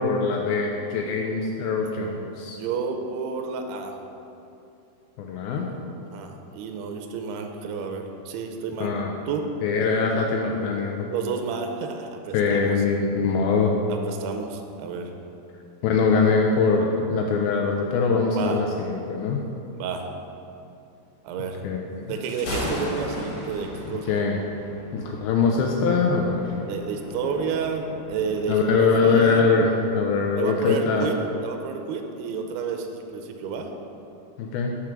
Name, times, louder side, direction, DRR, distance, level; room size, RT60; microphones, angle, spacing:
voice 1, 0.0-2.6 5.2-5.7 8.8-9.1 9.6-11.1 12.3-13.7 15.8-19.4 21.6-22.1 23.9-24.4 24.9-26.4 28.5-31.1 34.4-34.7, left 4 dB, 80° left, 0 dB, 2.2 m, -23 dB
voice 2, 2.6-4.0 6.1-8.9 9.3-9.5 11.1-12.8 13.9-15.1 18.4-18.6 19.8-20.1 21.2-21.6 22.1-24.2 26.7-29.5 30.4-31.2 31.4-33.7, right 5 dB, 85° right, 4 dB, 2.6 m, -30 dB
Thunder, 22.1-29.3, left 1 dB, 60° left, 2.7 m, -36 dB
5.9 x 4.9 x 5.8 m, 2.8 s
omnidirectional pair, 4.6 m